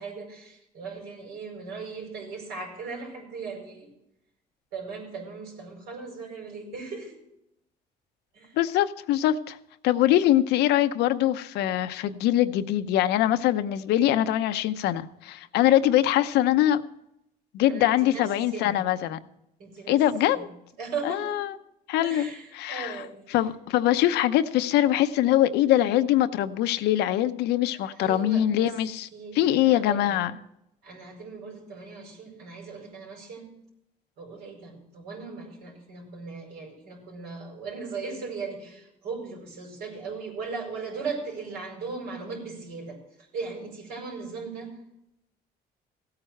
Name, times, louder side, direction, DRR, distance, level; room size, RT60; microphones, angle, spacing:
voice 1, 0.0-3.9 4.7-7.2 8.3-8.6 17.7-18.8 19.6-20.4 20.8-21.4 22.0-23.3 27.8-28.7 29.1-30.2 30.8-33.5 34.2-43.0 43.3-44.7, right 4 dB, 75° right, 1 dB, 4.9 m, -38 dB
voice 2, 8.6-9.6 9.8-16.8 17.5-19.2 19.9-20.5 21.0-21.5 21.9-22.3 22.5-23.0 23.3-29.1 29.3-30.3, left 12 dB, 85° left, 11 dB, 0.8 m, -23 dB
16.5 x 8.9 x 4.5 m, 0.82 s
cardioid pair, 110°, 17 cm